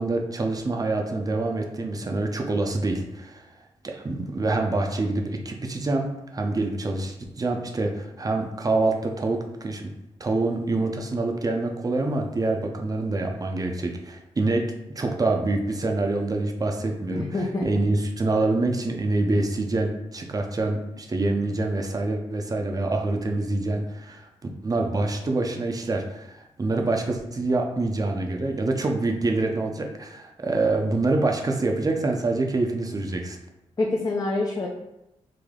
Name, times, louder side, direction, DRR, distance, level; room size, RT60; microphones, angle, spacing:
voice 1, 0.0-3.5 3.8-9.9 10.2-24.3 24.6-33.4, right 2 dB, 30° right, 3 dB, 0.5 m, -26 dB
voice 2, 17.1-17.7 33.8-34.7, left 2 dB, 30° left, -2 dB, 0.5 m, -26 dB
3.3 x 2.1 x 3.6 m, 0.90 s
cardioid pair, 70°, 12 cm